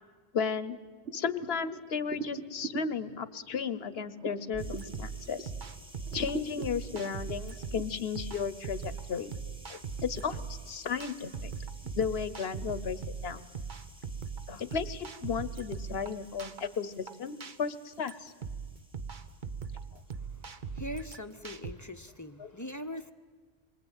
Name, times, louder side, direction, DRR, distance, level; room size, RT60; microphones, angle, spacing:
voice 1, 0.3-0.8 1.1-5.5 6.1-9.4 9.7-11.5 11.9-13.5 14.5-18.3 22.4-22.5, left 6 dB, 75° left, 14 dB, 1.2 m, -34 dB
sound 1, 1.0-5.7 6.0-7.8, right 4 dB, 90° right, 1.9 m, -43 dB
sound 2, 4.5-21.7, right 5 dB, 50° right, 1.2 m, -40 dB
sound 3, 4.6-20.9, equal, 5° right, 1.7 m, -56 dB
voice 2, 20.1-23.1, left 1 dB, 20° left, 9 dB, 0.9 m, -42 dB
27.0 x 23.0 x 9.0 m, 1.5 s
omnidirectional pair, 1.1 m